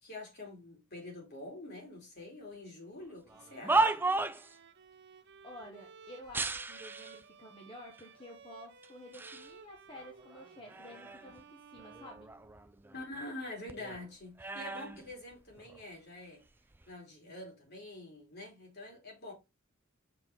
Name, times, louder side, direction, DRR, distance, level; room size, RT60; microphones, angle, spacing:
voice 1, 0.0-4.1 12.9-16.4 16.9-19.3, left 2 dB, 55° left, 3.1 m, -46 dB
sound 1, 3.3-4.6 6.3-7.2 8.0-8.1 8.8-9.5 9.9-11.4 11.8-13.4 13.7-15.8 16.6-16.9, right 3 dB, 10° right, 0.3 m, -35 dB
Bowed string instrument, 3.3-13.0, right 6 dB, 55° right, 0.7 m, -56 dB
voice 2, 5.4-12.3, left 1 dB, 25° left, 1.2 m, -51 dB
5.9 x 4.5 x 3.6 m
head